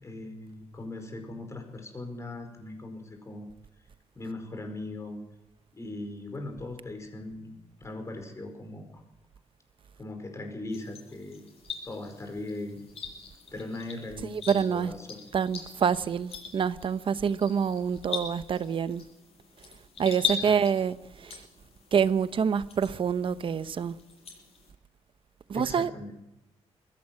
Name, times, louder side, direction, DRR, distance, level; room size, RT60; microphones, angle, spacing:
voice 1, 0.0-3.5 4.1-5.2 5.7-7.5 7.8-9.0 10.0-11.4 11.8-12.8 13.5-15.3 20.4-20.5 25.5-26.1, left 2 dB, 25° left, 5.0 m, -39 dB
sound 1, 10.7-24.7, left 6 dB, 60° left, 7.7 m, -41 dB
voice 2, 14.2-14.9 15.3-19.0 20.0-21.4 21.9-23.9 25.5-25.9, right 7 dB, 50° right, 0.8 m, -27 dB
21.0 x 16.5 x 7.7 m
wide cardioid pair, 140°, 12 cm